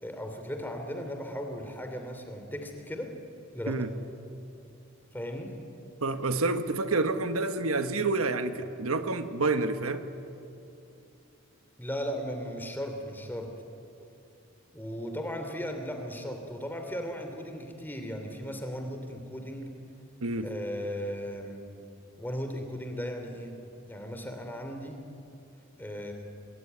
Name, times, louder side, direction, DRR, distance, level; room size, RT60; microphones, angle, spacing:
voice 1, 0.0-3.1 3.5-3.8 5.1-5.5 11.8-13.5 14.7-19.7 20.4-21.6 22.2-23.6 23.9-25.0 25.8-26.1, equal, 10° left, 5 dB, 3.0 m, -36 dB
voice 2, 6.0-10.0 20.2-20.5, right 3 dB, 85° right, 9 dB, 1.3 m, -28 dB
27.0 x 20.0 x 9.6 m, 2.7 s
head